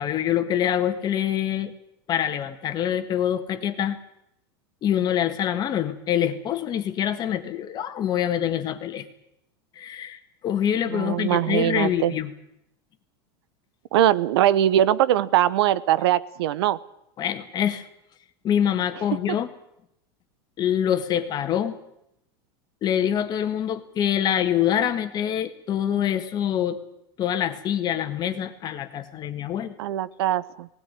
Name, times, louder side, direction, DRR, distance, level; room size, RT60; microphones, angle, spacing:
voice 1, 0.0-1.7 2.1-4.0 4.8-9.1 9.8-12.3 17.2-17.8 18.4-19.5 20.6-21.8 22.8-26.8 27.2-29.7, left 10 dB, 30° left, 8 dB, 1.8 m, -25 dB
voice 2, 10.9-12.1 13.9-16.8 29.8-30.7, right 12 dB, 75° right, 17 dB, 0.9 m, -21 dB
19.0 x 17.0 x 9.9 m, 0.80 s
supercardioid pair, 140°, 13 cm